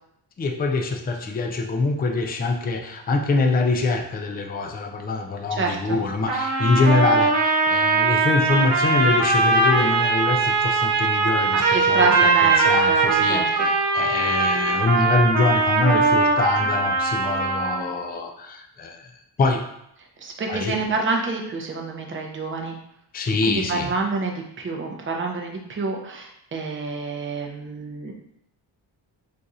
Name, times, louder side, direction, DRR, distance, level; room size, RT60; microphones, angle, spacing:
voice 1, 0.4-12.1 12.4-19.1 19.4-19.6 20.5-20.8 23.1-23.9, left 3 dB, 25° left, 4 dB, 0.3 m, -24 dB
voice 2, 5.5-6.0 11.5-13.7 20.2-22.8 23.5-28.1, right 3 dB, 30° right, 1 dB, 0.5 m, -27 dB
sound 1, 6.3-18.0, right 3 dB, 75° right, 0.7 m, -20 dB
2.5 x 2.4 x 4.1 m, 0.76 s
wide cardioid pair, 110°, 43 cm